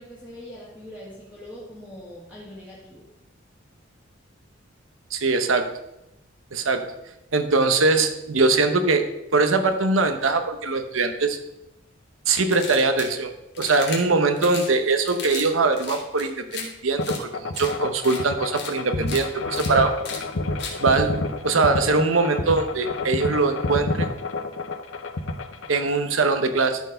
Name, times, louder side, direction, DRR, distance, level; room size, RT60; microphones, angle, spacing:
voice 1, 0.0-3.1, left 1 dB, 10° left, -9 dB, 1.9 m, -42 dB
voice 2, 5.1-5.7 6.5-6.9 7.3-11.4 12.3-19.9 20.8-24.1 25.7-26.8, right 3 dB, 90° right, 7 dB, 1.0 m, -22 dB
sound 1, 12.5-13.1 13.5-14.0 14.4-14.7 15.1-15.5 15.7-16.6 17.0-17.2 17.5-17.7 18.0-18.2 18.5-18.7 19.0-19.2 19.5-19.7 20.0-20.2 20.6-20.7, left 5 dB, 55° left, 2.0 m, -35 dB
sound 2, 17.0-25.9, left 2 dB, 80° left, 0.7 m, -29 dB
13.0 x 4.6 x 5.2 m, 0.89 s
head